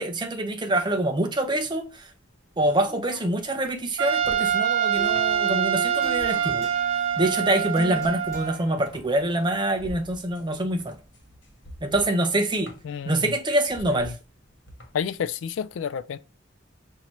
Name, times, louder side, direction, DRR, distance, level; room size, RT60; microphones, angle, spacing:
voice 1, 0.0-2.1 2.6-6.7 7.2-11.0 11.8-12.7 13.1-14.1, right 1 dB, 25° right, 0.6 m, -25 dB
sound 1, 1.4-15.1, equal, 65° left, 1.3 m, -46 dB
Trumpet, 4.0-8.6, right 8 dB, 80° right, 0.4 m, -25 dB
sound 2, 4.9-11.7, right 1 dB, 15° left, 1.7 m, -42 dB
voice 2, 12.8-13.3 13.9-14.1 14.9-16.2, left 7 dB, 85° left, 0.3 m, -30 dB
5.7 x 2.7 x 3.0 m
head